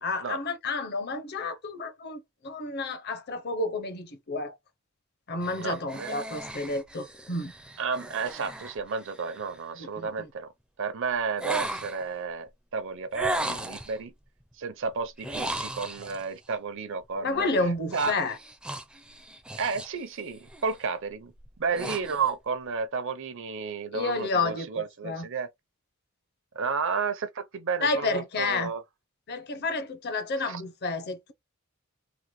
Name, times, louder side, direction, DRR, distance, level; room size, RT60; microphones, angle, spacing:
voice 1, 0.0-4.5 5.3-7.5 9.8-10.3 17.2-18.4 23.9-25.3 27.8-28.7 29.3-31.3, left 3 dB, 50° left, 0.7 m, -30 dB
sound 1, 5.4-9.6 11.4-12.1 13.1-14.0 15.2-16.2 17.9-20.0 20.4-20.7 21.3-22.3, right 1 dB, 5° right, 0.4 m, -36 dB
voice 2, 5.6-6.2 7.8-10.5 10.8-14.1 14.6-17.5 17.9-18.2 19.6-21.3 21.6-25.5 26.5-28.8 30.5-30.6, right 5 dB, 60° right, 0.6 m, -32 dB
3.8 x 2.1 x 3.0 m
head